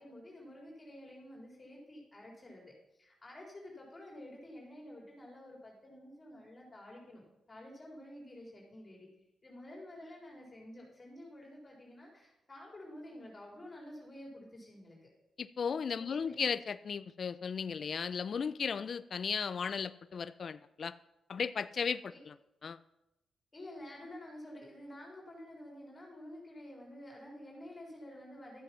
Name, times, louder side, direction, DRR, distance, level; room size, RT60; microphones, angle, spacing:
voice 1, 0.0-2.7 3.0-7.2 7.5-9.1 9.4-15.1 16.0-16.4 22.1-22.2 23.5-28.6, left 1 dB, 30° left, -2 dB, 3.9 m, -50 dB
voice 2, 15.4-20.9 21.3-22.3 22.6-22.8, left 6 dB, 55° left, 14 dB, 0.4 m, -36 dB
12.5 x 7.8 x 5.7 m, 0.91 s
cardioid pair, 65°, 0 cm